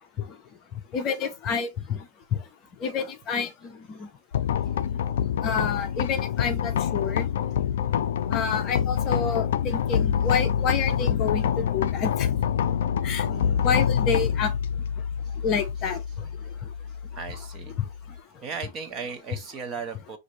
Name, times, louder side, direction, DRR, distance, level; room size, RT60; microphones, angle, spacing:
voice 1, 0.9-2.0 2.3-2.4 2.8-4.1 5.4-7.2 8.3-12.3 13.0-13.3 13.6-14.5 15.4-16.3 17.8-17.9, left 6 dB, 30° left, 0.7 m, -28 dB
sound 1, 4.3-18.2, left 8 dB, 75° left, 0.4 m, -26 dB
voice 2, 13.3-13.7 17.2-17.7 18.4-20.2, right 5 dB, 25° right, 0.7 m, -36 dB
6.3 x 2.6 x 3.0 m
supercardioid pair, 160°, 0 cm